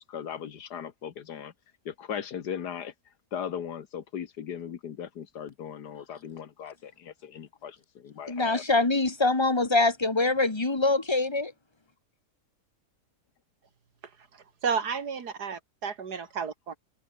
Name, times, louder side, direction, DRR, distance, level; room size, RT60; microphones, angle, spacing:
voice 1, 0.0-1.5 1.9-2.9 3.3-8.6, left 8 dB, 90° left, 1.9 m, -38 dB
voice 2, 8.3-11.5, left 2 dB, 15° left, 1.6 m, -24 dB
voice 3, 14.6-16.8, right 6 dB, 80° right, 2.5 m, -32 dB
omnidirectional pair, 1.7 m